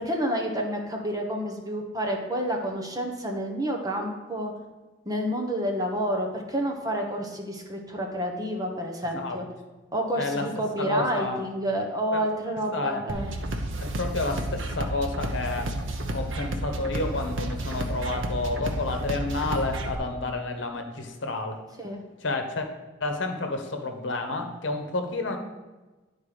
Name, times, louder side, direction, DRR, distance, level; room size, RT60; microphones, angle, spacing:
voice 1, 0.0-4.5 5.1-9.4 9.9-13.3 21.8-22.0, equal, 20° right, 1 dB, 1.0 m, -29 dB
voice 2, 10.2-10.5 10.8-11.4 12.1-12.2 12.7-13.0 13.8-15.7 16.1-21.6 22.2-22.7 23.0-25.4, left 2 dB, 70° left, 5 dB, 1.0 m, -30 dB
sound 1, 13.1-19.9, right 1 dB, 75° right, 0.9 m, -31 dB
10.5 x 4.6 x 5.0 m, 1.2 s
head